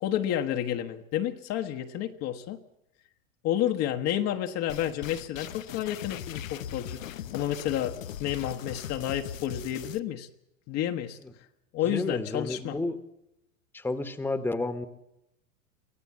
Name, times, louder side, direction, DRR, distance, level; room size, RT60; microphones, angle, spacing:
voice 1, 0.0-2.6 3.4-7.0 7.3-10.3 10.7-11.2 11.7-12.8, left 11 dB, 40° left, 6 dB, 1.3 m, -30 dB
sound 1, 4.7-10.0, left 10 dB, 75° left, 0.9 m, -40 dB
voice 2, 11.8-13.0 13.7-14.9, left 2 dB, 5° left, 10 dB, 1.4 m, -31 dB
24.0 x 16.0 x 7.4 m, 0.84 s
hypercardioid pair, 105°, 40 cm